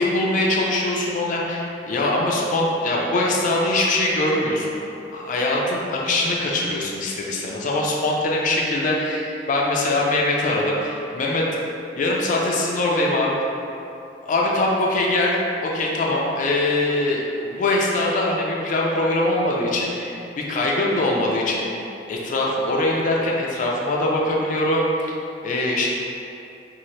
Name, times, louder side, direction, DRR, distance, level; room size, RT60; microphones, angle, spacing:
voice 1, 0.0-4.8 5.1-11.4 12.0-13.3 14.2-21.8 22.1-25.2 25.4-25.9, left 1 dB, 45° left, -2 dB, 0.3 m, -22 dB
2.7 x 2.5 x 3.1 m, 2.7 s
head